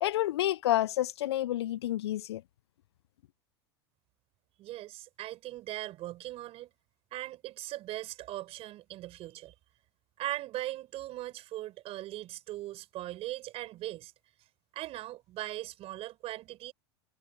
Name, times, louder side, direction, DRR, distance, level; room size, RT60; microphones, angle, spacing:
voice 1, 0.0-2.4, left 14 dB, 80° left, 0.4 m, -29 dB
voice 2, 4.6-6.7 7.1-9.5 10.2-14.1 14.7-16.7, right 15 dB, 45° right, 5.8 m, -39 dB
hypercardioid pair, 95°, 14 cm